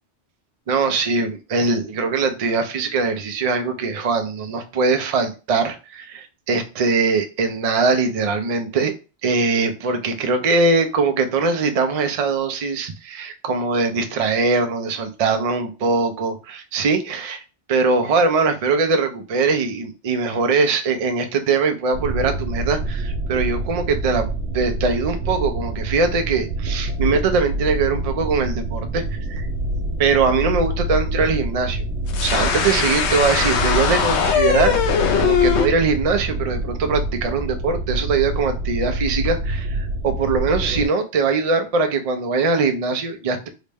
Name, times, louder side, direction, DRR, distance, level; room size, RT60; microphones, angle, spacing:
voice 1, 0.7-8.9 9.2-17.4 17.7-24.3 24.5-29.5 30.0-31.8 32.2-34.8 35.2-43.5, right 4 dB, 45° right, 6 dB, 0.5 m, -21 dB
sound 1, 21.9-40.9, right 1 dB, 80° right, 0.9 m, -26 dB
sound 2, 32.1-35.7, left 7 dB, 80° left, 0.9 m, -20 dB
3.7 x 2.1 x 3.3 m, 0.31 s
omnidirectional pair, 1.1 m